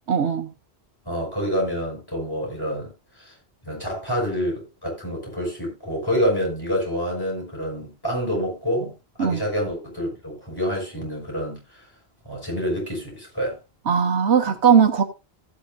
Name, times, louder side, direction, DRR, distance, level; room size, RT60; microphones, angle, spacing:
voice 1, 0.1-0.5 9.2-9.4 13.9-15.0, right 7 dB, 75° right, 1.3 m, -19 dB
voice 2, 1.0-3.3 3.6-8.9 9.2-11.8 12.2-13.6, equal, 20° left, 6.4 m, -27 dB
16.0 x 8.7 x 2.5 m
omnidirectional pair, 1.1 m